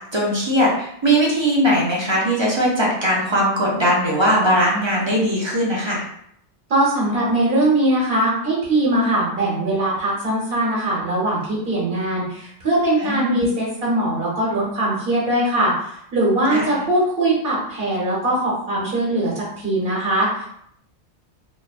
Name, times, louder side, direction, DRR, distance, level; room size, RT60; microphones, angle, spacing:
voice 1, 0.1-6.0 13.0-13.4 16.5-16.7, equal, 35° right, -5 dB, 0.4 m, -19 dB
voice 2, 6.7-20.5, right 1 dB, 55° right, -5 dB, 1.3 m, -21 dB
3.0 x 2.1 x 2.4 m, 0.70 s
omnidirectional pair, 1.1 m